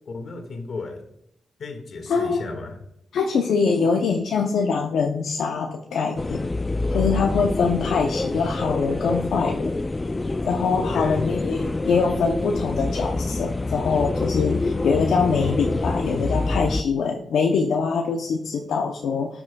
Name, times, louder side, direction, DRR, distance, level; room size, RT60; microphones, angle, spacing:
voice 1, 0.1-1.0 1.6-2.8 10.8-11.2, left 3 dB, 65° left, 5 dB, 1.7 m, -33 dB
voice 2, 2.1-2.4 3.1-6.5 6.9-9.7 10.4-19.4, left 5 dB, 85° left, 2 dB, 0.6 m, -23 dB
sound 1, 6.2-16.8, left 2 dB, 25° left, 0.3 m, -26 dB
13.0 x 6.0 x 2.3 m, 0.75 s
cardioid pair, 80°, 0 cm